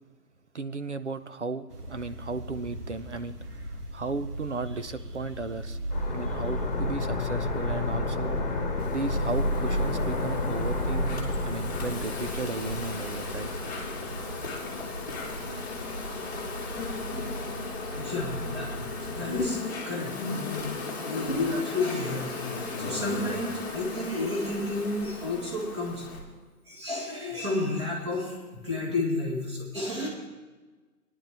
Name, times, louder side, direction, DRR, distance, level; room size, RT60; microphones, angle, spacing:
voice 1, 0.5-3.4 3.9-5.8 6.1-8.4 8.9-13.5, right 3 dB, 50° right, 12 dB, 0.5 m, -35 dB
sound 1, 1.7-19.3, right 1 dB, 75° right, 2.1 m, -39 dB
sound 2, 5.9-14.6 14.9-15.0, left 2 dB, 30° left, 1.2 m, -30 dB
Insect, 8.8-26.2, left 3 dB, 15° left, 1.4 m, -36 dB
voice 2, 17.9-18.7 19.0-19.6 19.8-22.5 22.8-26.1 26.7-28.4 28.6-30.1, left 2 dB, 20° right, -2 dB, 1.6 m, -31 dB
18.5 x 10.5 x 3.4 m, 1.3 s
hypercardioid pair, 180°, 47 cm